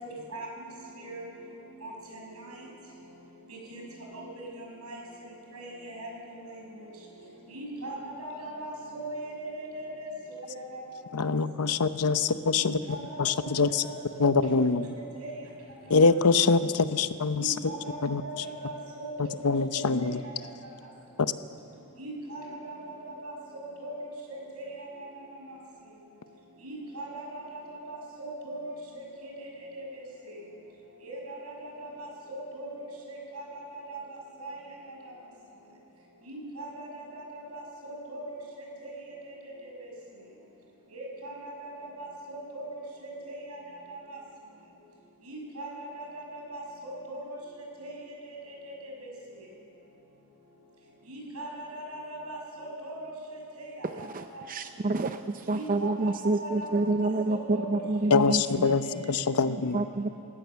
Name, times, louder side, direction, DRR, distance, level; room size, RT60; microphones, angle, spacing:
voice 1, 0.0-1.5 1.8-2.7 3.5-6.9 7.5-11.3 12.6-15.5 16.0-16.1 16.4-16.5 17.4-20.7 21.9-25.6 26.6-30.5 31.0-35.1 36.2-39.9 40.9-44.2 45.2-49.5 51.1-54.4 54.9-55.0 55.5-56.1 56.4-59.3, right 1 dB, 85° right, -1 dB, 6.0 m, -41 dB
voice 2, 11.1-12.8 13.2-13.9 14.2-14.9 15.9-17.5 18.0-18.2 19.4-20.2 58.1-58.8 59.1-59.8, left 4 dB, 90° left, 12 dB, 0.8 m, -24 dB
voice 3, 53.8-58.7 59.7-60.1, right 2 dB, 40° right, 8 dB, 0.6 m, -28 dB
29.0 x 16.0 x 7.0 m, 2.7 s
head